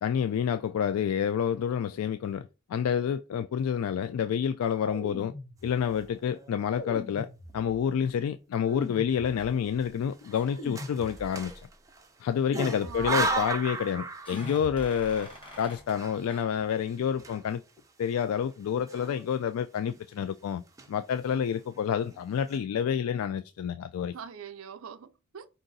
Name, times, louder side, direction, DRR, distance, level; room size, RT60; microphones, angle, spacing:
voice 1, 0.0-5.3 5.6-7.3 7.5-11.5 12.2-17.6 18.0-20.6 20.9-24.1, left 8 dB, 90° left, 0.3 m, -29 dB
sound 1, 4.9-6.1 6.8-7.9 8.7-9.8 10.6-11.6 12.5-13.4 14.3-15.2, left 2 dB, 50° left, 1.2 m, -42 dB
sound 2, 6.1-6.6 7.1-7.2 7.5-8.2 8.6-8.8 9.8-12.1 12.5-14.7 15.0-17.8 18.1-18.2 18.8-19.5 19.9-20.2 20.6-21.2 21.7-21.8 22.1-22.6, right 3 dB, 15° right, 0.5 m, -36 dB
sound 3, 10.3-10.9 11.2-11.5 12.9-13.5 14.2-16.0 16.3-16.4, left 1 dB, 25° left, 1.5 m, -48 dB
voice 2, 12.8-13.5 24.1-25.5, right 7 dB, 70° right, 0.5 m, -42 dB
4.7 x 2.6 x 3.9 m
head